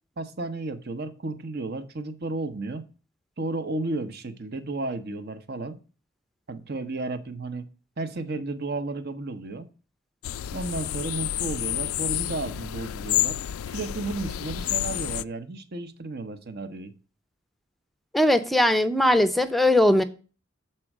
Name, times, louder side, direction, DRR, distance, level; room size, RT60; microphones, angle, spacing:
voice 1, 0.2-2.8 3.4-5.8 6.5-7.7 8.0-9.7 10.5-13.4 13.7-16.9, right 2 dB, 50° right, 0.9 m, -33 dB
sound 1, 10.2-15.2, left 13 dB, 90° left, 0.3 m, -29 dB
voice 2, 18.1-20.0, left 1 dB, ahead, 0.6 m, -20 dB
7.5 x 4.4 x 6.0 m
head